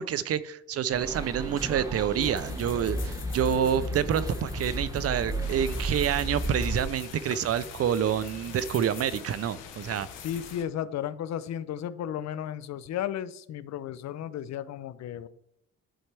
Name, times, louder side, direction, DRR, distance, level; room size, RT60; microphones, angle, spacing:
voice 1, 0.0-10.1, right 9 dB, 55° right, 0.5 m, -28 dB
sound 1, 0.9-6.8, right 1 dB, 10° right, 1.2 m, -34 dB
sound 2, 2.2-10.6, left 4 dB, 40° left, 1.0 m, -41 dB
sound 3, 5.4-10.6, left 8 dB, 90° left, 0.9 m, -46 dB
voice 2, 10.1-15.3, left 10 dB, 65° left, 0.5 m, -34 dB
11.0 x 4.4 x 3.3 m
cardioid pair, 90°, 30 cm